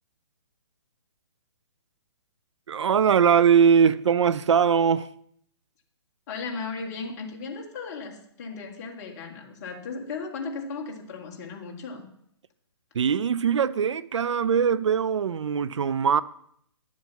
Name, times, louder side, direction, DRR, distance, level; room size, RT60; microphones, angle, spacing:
voice 1, 2.7-5.1 12.9-16.2, right 7 dB, 80° right, 0.5 m, -21 dB
voice 2, 6.3-12.1, left 4 dB, 35° left, 1.8 m, -36 dB
11.0 x 7.3 x 5.9 m
hypercardioid pair, 150°, 15 cm